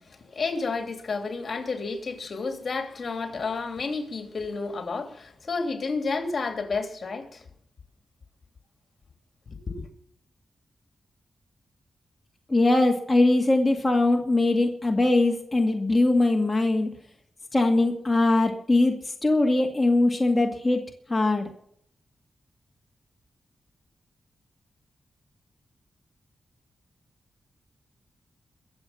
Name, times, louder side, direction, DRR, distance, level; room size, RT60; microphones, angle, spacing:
voice 1, 0.1-7.4 9.5-9.8, left 4 dB, 50° left, 3.1 m, -31 dB
voice 2, 12.5-16.9 17.5-18.9 19.2-20.8 21.1-21.5, left 2 dB, 20° left, 2.2 m, -21 dB
23.5 x 8.0 x 5.9 m
wide cardioid pair, 95°, 0 cm